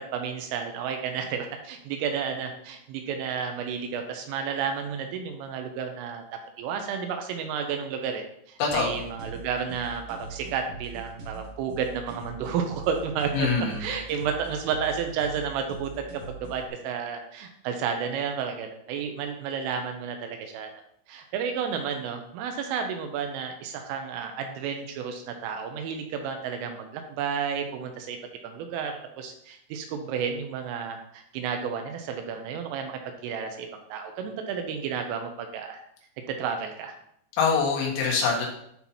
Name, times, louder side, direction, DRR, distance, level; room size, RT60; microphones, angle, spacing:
voice 1, 0.1-6.2 6.6-13.5 13.8-16.0 16.4-20.7 21.1-28.2 28.4-35.8 36.3-36.9, right 6 dB, 80° right, 5 dB, 3.2 m, -31 dB
voice 2, 8.6-9.0 13.3-13.8 37.4-38.5, left 5 dB, 85° left, -3 dB, 4.4 m, -24 dB
sound 1, 8.7-16.7, right 3 dB, 60° right, 3.9 m, -42 dB
12.0 x 4.3 x 2.8 m, 0.72 s
omnidirectional pair, 5.9 m